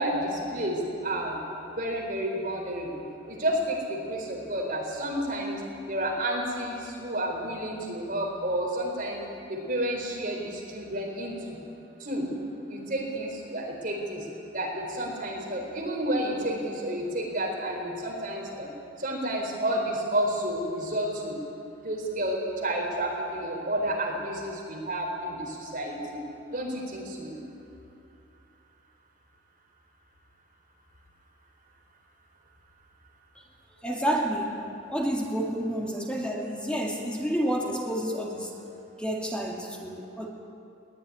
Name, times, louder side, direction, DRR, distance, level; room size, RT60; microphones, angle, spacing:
voice 1, 0.0-1.4 1.8-2.9 3.3-5.6 5.9-9.2 9.5-11.6 12.0-12.3 12.7-14.2 14.5-18.7 19.0-21.4 21.8-26.2 26.5-27.4, right 1 dB, 45° right, 0 dB, 4.3 m, -30 dB
voice 2, 33.8-34.6 34.9-38.5 39.0-40.3, equal, 5° left, -1 dB, 2.2 m, -29 dB
21.5 x 19.5 x 9.8 m, 2.7 s
head